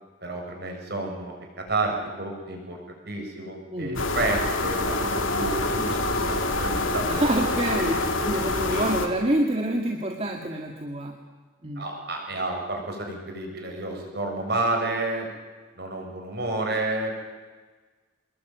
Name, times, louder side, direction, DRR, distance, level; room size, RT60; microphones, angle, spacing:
voice 1, 0.2-7.1 7.8-7.9 8.7-8.9 11.8-15.3 15.8-17.1, right 2 dB, 55° right, 2 dB, 7.2 m, -30 dB
sound 1, 4.0-9.1, left 2 dB, 85° left, 2.6 m, -26 dB
voice 2, 7.1-7.9 8.3-11.1 11.6-11.8, right 1 dB, 30° right, 2 dB, 2.0 m, -26 dB
26.0 x 21.0 x 9.3 m, 1.4 s
head